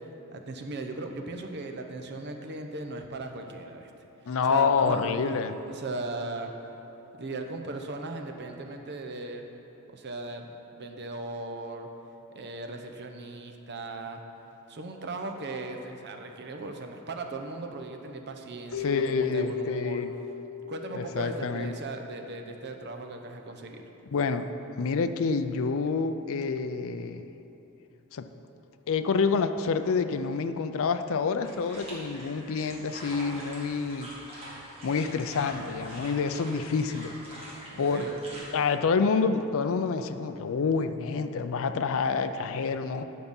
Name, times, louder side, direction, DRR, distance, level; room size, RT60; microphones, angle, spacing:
voice 1, 0.3-3.9 4.5-5.3 5.6-6.5 7.2-9.5 9.9-11.9 12.3-14.2 14.7-20.0 20.7-23.8 37.7-38.1, right 2 dB, 50° right, 4 dB, 0.8 m, -37 dB
voice 2, 4.3-5.5 18.8-20.1 20.9-21.7 24.1-24.5 24.8-27.2 28.1-28.3 28.9-34.1 34.8-37.1 37.8-43.0, left 5 dB, 65° left, 9 dB, 0.4 m, -28 dB
Keyboard (musical), 18.7-22.0, left 7 dB, 85° left, 1.0 m, -36 dB
sound 1, 31.4-38.4, right 1 dB, 25° right, 2.2 m, -44 dB
9.4 x 6.7 x 5.4 m, 3.0 s
head